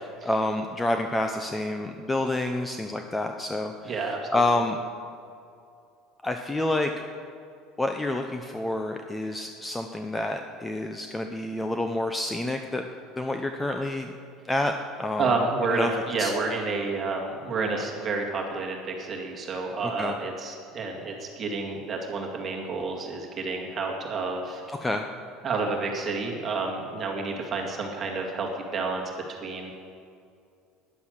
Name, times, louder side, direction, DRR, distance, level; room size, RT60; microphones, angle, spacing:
voice 1, 0.2-4.8 6.2-6.9 7.8-12.8 13.2-14.1 14.5-15.4 15.7-15.9 16.2-16.3 19.8-20.1 24.7-25.1, left 2 dB, 10° left, 5 dB, 0.7 m, -28 dB
voice 2, 3.8-4.4 15.2-24.6 25.4-29.0 29.3-29.7, right 3 dB, 30° right, 0 dB, 2.0 m, -30 dB
13.0 x 10.5 x 6.5 m, 2.4 s
cardioid pair, 130°, 0 cm